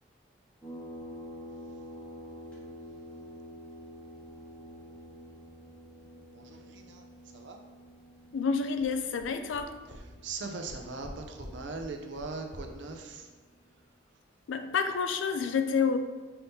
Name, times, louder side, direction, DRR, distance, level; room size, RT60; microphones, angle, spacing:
sound 1, 0.6-13.7, equal, 5° left, 0.9 m, -49 dB
voice 1, 6.3-7.0 7.3-7.6 9.9-13.3, right 3 dB, 70° right, 3 dB, 0.6 m, -40 dB
voice 2, 8.3-9.8 14.5-16.0, left 5 dB, 80° left, 8 dB, 0.4 m, -29 dB
sound 2, 8.8-8.9 9.2-9.3 9.5-9.6 9.9-10.0 10.3-10.4 10.6-11.1 11.4-11.5 11.8-11.9 12.2-12.3 12.5-12.6, left 1 dB, 35° left, 0.6 m, -46 dB
5.6 x 3.5 x 2.7 m, 1.3 s
head